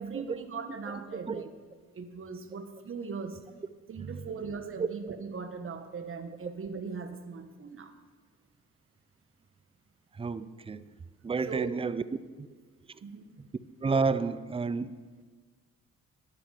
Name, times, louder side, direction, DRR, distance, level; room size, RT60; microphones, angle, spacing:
voice 1, 0.0-1.5 1.9-3.4 3.9-7.9 11.5-11.7 13.0-13.3, right 5 dB, 45° right, 1.3 m, -39 dB
voice 2, 10.1-10.8 11.2-12.0 12.4-12.5 13.8-15.2, right 4 dB, 20° right, 0.5 m, -30 dB
12.0 x 10.5 x 5.0 m
cardioid pair, 90°, 30 cm